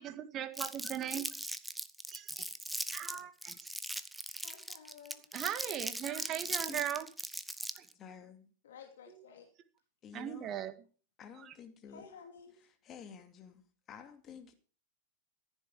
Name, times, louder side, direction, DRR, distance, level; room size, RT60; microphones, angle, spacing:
voice 1, 0.0-1.3 2.1-2.5 2.9-3.6 5.3-7.1 7.8-7.9 10.1-10.7 11.4-11.5, right 10 dB, 30° right, 1.8 m, -38 dB
Crumpling crinkling, 0.6-7.9, right 1 dB, 5° right, 1.0 m, -39 dB
voice 2, 4.4-5.2 8.6-9.5 11.9-12.5, left 6 dB, 60° left, 2.6 m, -53 dB
voice 3, 7.9-8.5 10.0-10.5 11.2-12.1 12.5-14.5, left 7 dB, 30° left, 2.5 m, -51 dB
15.0 x 10.5 x 4.9 m
figure-of-eight pair, 90°, 0 cm